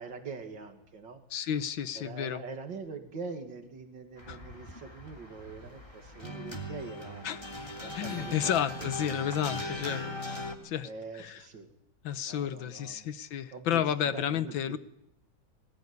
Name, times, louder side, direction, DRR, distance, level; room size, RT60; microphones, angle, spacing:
voice 1, 0.0-1.2 1.9-7.3 7.8-8.9 9.9-10.2 10.8-11.7 12.3-13.1 13.5-13.8 14.1-14.8, right 4 dB, 70° right, 5 dB, 2.9 m, -43 dB
voice 2, 1.3-2.4 4.3-4.4 7.2-7.4 7.9-10.0 10.3-11.4 12.0-14.8, left 9 dB, 85° left, 13 dB, 1.8 m, -32 dB
sound 1, 4.2-10.6, left 1 dB, 15° left, 2.8 m, -39 dB
22.0 x 19.5 x 9.7 m, 0.81 s
omnidirectional pair, 2.0 m